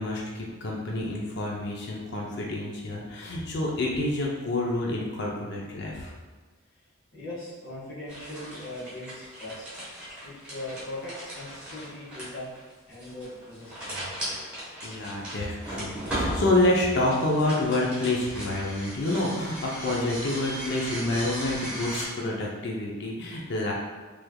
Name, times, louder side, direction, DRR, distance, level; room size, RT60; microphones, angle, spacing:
voice 1, 0.0-6.1 14.8-23.7, left 2 dB, 55° left, -2 dB, 0.5 m, -28 dB
voice 2, 7.1-9.7 10.2-12.5 12.9-14.1, left 1 dB, 70° left, -7 dB, 1.3 m, -40 dB
sound 1, 8.1-22.0, equal, 5° right, 1.1 m, -37 dB
3.3 x 3.1 x 2.2 m, 1.3 s
head